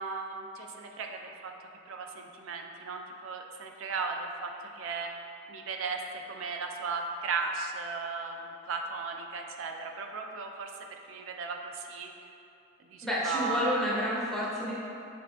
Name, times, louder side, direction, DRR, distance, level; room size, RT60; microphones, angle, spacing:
voice 1, 0.0-1.5 1.9-5.1 5.5-10.7 11.1-12.1 12.9-13.8, right 4 dB, 75° right, 3 dB, 0.3 m, -36 dB
voice 2, 13.0-14.7, left 1 dB, 5° left, -8 dB, 0.5 m, -30 dB
6.3 x 2.5 x 2.2 m, 2.7 s
head